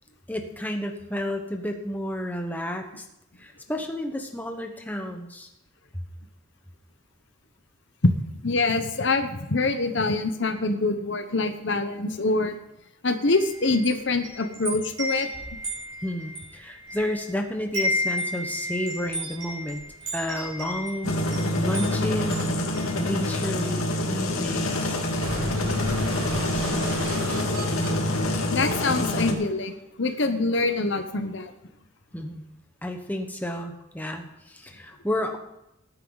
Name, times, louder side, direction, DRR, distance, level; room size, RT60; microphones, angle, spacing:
voice 1, 0.3-3.0 3.4-5.5 16.0-19.8 20.1-21.2 21.6-22.5 22.9-25.0 32.1-32.4 32.8-35.4, equal, 10° left, 3 dB, 1.1 m, -31 dB
voice 2, 8.4-12.6 13.0-15.3 28.5-31.5, left 3 dB, 55° left, 8 dB, 1.0 m, -25 dB
Wind chime, 13.2-17.3 17.6-23.5, left 1 dB, 30° right, 5.0 m, -33 dB
sound 1, 21.0-29.3, left 1 dB, 90° left, 2.1 m, -26 dB
sound 2, 25.2-29.2, right 2 dB, 90° right, 1.9 m, -35 dB
18.5 x 9.5 x 4.0 m, 0.87 s
head